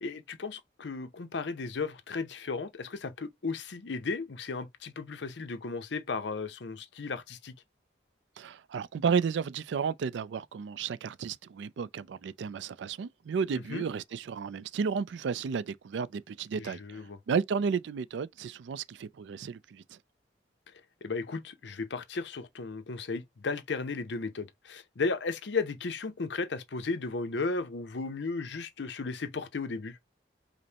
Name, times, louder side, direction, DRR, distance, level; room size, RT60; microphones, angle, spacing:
voice 1, 0.0-7.5 13.5-13.8 16.5-17.2 21.0-30.0, left 4 dB, 70° left, 0.6 m, -35 dB
voice 2, 8.4-20.0, right 6 dB, 75° right, 0.4 m, -33 dB
5.1 x 2.1 x 2.7 m
head